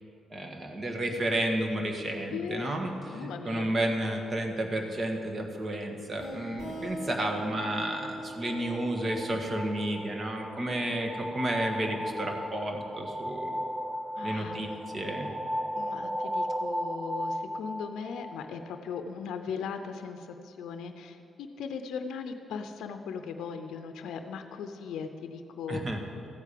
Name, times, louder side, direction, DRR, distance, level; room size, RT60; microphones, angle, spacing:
voice 1, 0.3-13.6 14.2-15.3 25.7-26.0, right 1 dB, 35° right, 2 dB, 1.6 m, -32 dB
voice 2, 2.3-2.7 3.1-3.7 6.5-6.6 9.4-9.6 10.9-11.0 14.2-14.7 15.8-25.9, left 6 dB, 85° left, 7 dB, 0.6 m, -38 dB
sound 1, 6.2-11.6, right 1 dB, 90° right, 3.2 m, -42 dB
sound 2, 7.1-18.8, equal, 10° right, 0.5 m, -36 dB
14.0 x 4.8 x 8.4 m, 2.7 s
cardioid pair, 70°, 0 cm